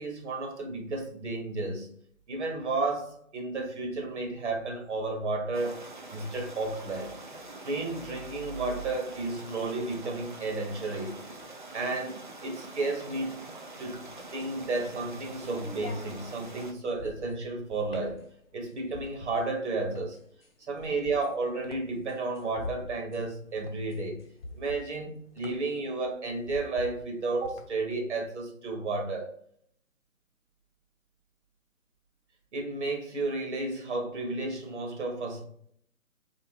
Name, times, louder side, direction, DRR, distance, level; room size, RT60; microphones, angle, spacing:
voice 1, 0.0-1.9 2.3-5.8 6.1-7.1 7.6-11.2 11.7-13.4 13.8-14.0 14.3-20.2 20.7-24.2 24.5-29.3 32.5-35.5, right 3 dB, 55° right, 1.2 m, -32 dB
sound 1, 5.5-16.7, right 2 dB, 40° right, 0.4 m, -45 dB
sound 2, 14.2-27.9, left 2 dB, 45° left, 0.9 m, -46 dB
3.2 x 2.9 x 4.6 m
hypercardioid pair, 160°, 42 cm